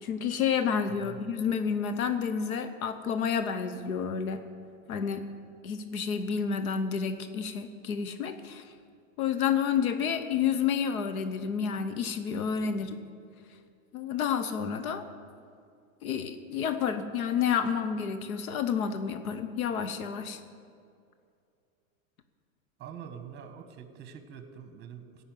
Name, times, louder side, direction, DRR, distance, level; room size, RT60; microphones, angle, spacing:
voice 1, 0.0-4.5 4.9-5.2 5.6-8.7 9.2-13.0 13.9-15.0 16.0-20.4, left 7 dB, 90° left, 9 dB, 1.0 m, -30 dB
voice 2, 22.8-25.2, right 8 dB, 25° right, 9 dB, 1.3 m, -45 dB
15.5 x 5.7 x 9.2 m, 2.4 s
supercardioid pair, 135°, 41 cm